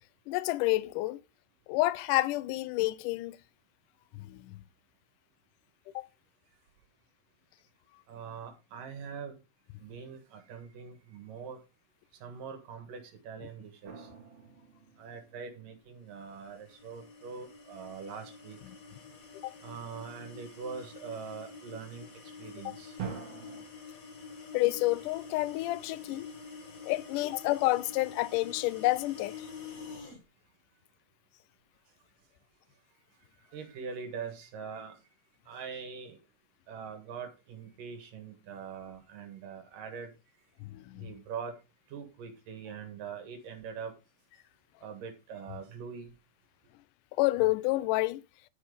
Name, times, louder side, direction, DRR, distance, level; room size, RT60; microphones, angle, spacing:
voice 1, 0.3-1.2 1.7-3.4 4.1-4.6 6.0-6.1 19.4-19.5 22.7-22.8 24.5-26.3 26.8-29.5 40.6-41.1 47.2-48.2, left 19 dB, 80° left, 2.1 m, -29 dB
voice 2, 8.1-9.3 9.8-11.6 12.2-14.1 15.0-18.6 19.6-22.1 22.4-22.9 33.5-34.9 35.5-36.2 36.7-40.1 41.0-41.5 41.9-43.9 44.8-46.1, right 6 dB, 80° right, 3.2 m, -43 dB
sound 1, 13.8-15.9 23.0-23.6, right 7 dB, 50° right, 3.0 m, -43 dB
sound 2, 16.3-30.2, left 4 dB, 45° left, 1.1 m, -48 dB
11.5 x 4.7 x 5.0 m
omnidirectional pair, 3.8 m